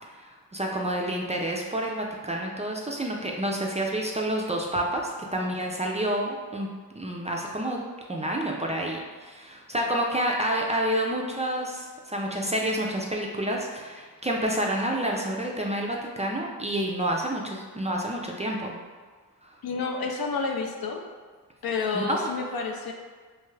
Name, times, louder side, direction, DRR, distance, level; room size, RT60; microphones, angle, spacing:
voice 1, 0.1-6.7 7.0-7.8 8.1-18.8 19.4-19.6 21.9-22.3, right 1 dB, 20° right, -1 dB, 0.3 m, -29 dB
voice 2, 19.6-21.0 21.6-22.9, left 4 dB, 65° left, 3 dB, 0.5 m, -29 dB
2.7 x 2.3 x 3.1 m, 1.5 s
cardioid pair, 50°, 39 cm